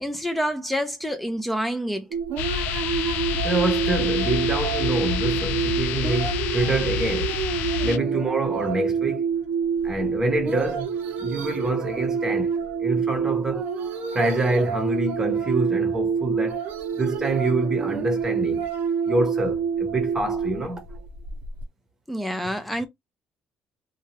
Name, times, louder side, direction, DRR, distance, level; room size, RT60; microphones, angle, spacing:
voice 1, 0.0-2.1 11.9-12.0 22.1-22.9, equal, 5° left, 0.5 m, -27 dB
sound 1, 2.1-21.6, right 6 dB, 70° right, 0.7 m, -27 dB
sound 2, 2.4-8.0, left 6 dB, 85° left, 0.4 m, -28 dB
voice 2, 3.4-7.3 7.8-9.3 9.8-13.7 14.1-16.6 16.9-18.7 19.1-20.8, right 2 dB, 20° right, 0.9 m, -26 dB
2.8 x 2.3 x 3.1 m
cardioid pair, 140°, 3 cm